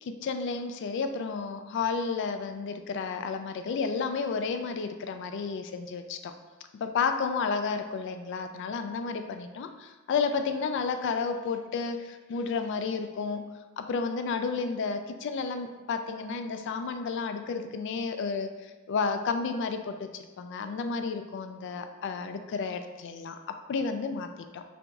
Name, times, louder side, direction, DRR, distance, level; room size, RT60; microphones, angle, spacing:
voice 1, 0.0-6.3 6.8-13.4 13.8-24.6, left 5 dB, 55° left, 8 dB, 0.3 m, -32 dB
5.8 x 2.6 x 2.3 m, 1.2 s
head